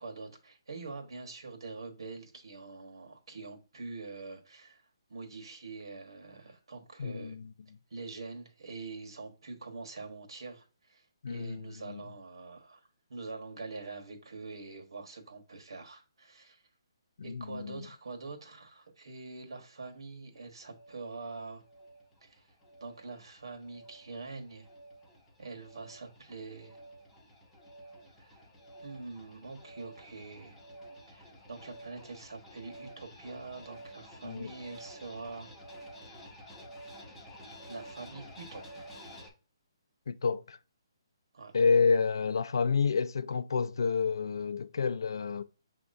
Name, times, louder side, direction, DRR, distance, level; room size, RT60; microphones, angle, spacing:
voice 1, 0.0-4.8 5.1-7.4 7.9-12.8 13.1-16.6 17.2-21.6 22.2-22.5 22.8-24.7 25.4-26.8 28.2-28.4 28.8-30.6 31.1-35.5 37.7-38.9 41.3-41.5, right 3 dB, 80° right, 1.3 m, -45 dB
voice 2, 7.0-7.5 11.2-12.0 17.2-17.9 34.2-34.5 40.1-40.6 41.5-45.4, left 5 dB, 60° left, 0.4 m, -29 dB
sound 1, 20.3-39.3, equal, 5° left, 0.6 m, -51 dB
6.1 x 2.9 x 2.6 m
hypercardioid pair, 175°, 3 cm